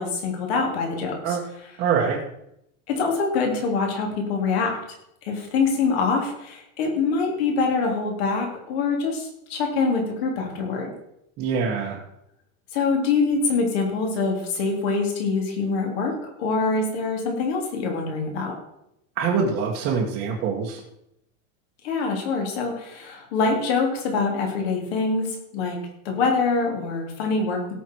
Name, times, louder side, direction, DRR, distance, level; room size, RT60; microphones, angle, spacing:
voice 1, 0.0-1.4 2.9-4.8 5.2-10.9 12.7-18.6 21.8-27.7, left 4 dB, 50° left, 1 dB, 3.5 m, -24 dB
voice 2, 1.8-2.2 11.4-12.0 19.2-20.8, right 6 dB, 25° right, -4 dB, 1.5 m, -24 dB
17.0 x 7.2 x 4.7 m, 0.80 s
supercardioid pair, 175°, 41 cm